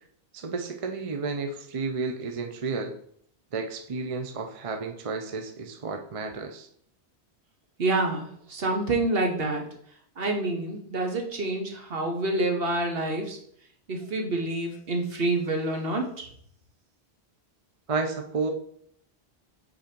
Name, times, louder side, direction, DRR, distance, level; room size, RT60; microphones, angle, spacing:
voice 1, 0.3-2.9 3.5-6.7 17.9-18.5, right 4 dB, 40° right, 5 dB, 0.6 m, -31 dB
voice 2, 7.8-9.6 10.2-13.4 13.9-16.3, right 2 dB, 60° right, 3 dB, 1.3 m, -27 dB
5.1 x 4.2 x 5.2 m, 0.65 s
omnidirectional pair, 1.1 m